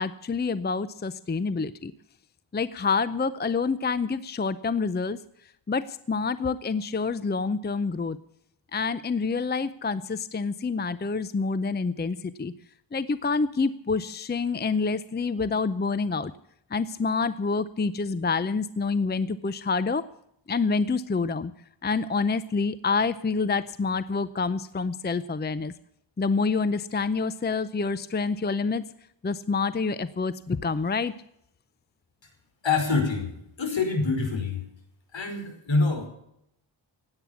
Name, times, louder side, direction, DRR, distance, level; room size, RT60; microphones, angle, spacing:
voice 1, 0.0-1.9 2.5-5.2 5.7-8.2 8.7-12.5 12.9-16.3 16.7-20.1 20.5-21.5 21.8-25.7 26.2-28.8 29.2-31.1, left 4 dB, 20° left, 15 dB, 0.6 m, -27 dB
voice 2, 32.6-34.6 35.1-36.1, left 4 dB, 70° left, 4 dB, 5.2 m, -26 dB
16.5 x 10.0 x 7.1 m, 0.74 s
wide cardioid pair, 120°, 47 cm